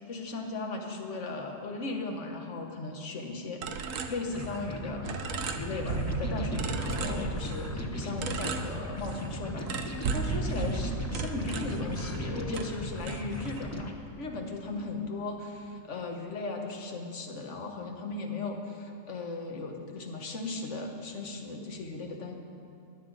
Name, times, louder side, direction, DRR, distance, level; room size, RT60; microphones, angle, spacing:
voice 1, 0.1-3.7 4.1-22.3, left 3 dB, 65° left, 3 dB, 1.5 m, -37 dB
sound 1, 3.6-4.8 5.0-6.2 6.5-7.7 8.2-9.3 9.7-12.3 12.5-13.7, right 6 dB, 90° right, 1.1 m, -39 dB
sound 2, 4.3-13.9, left 1 dB, 15° left, 0.6 m, -38 dB
sound 3, 5.8-14.8, right 4 dB, 70° right, 1.1 m, -36 dB
15.0 x 11.0 x 4.0 m, 2.5 s
omnidirectional pair, 1.3 m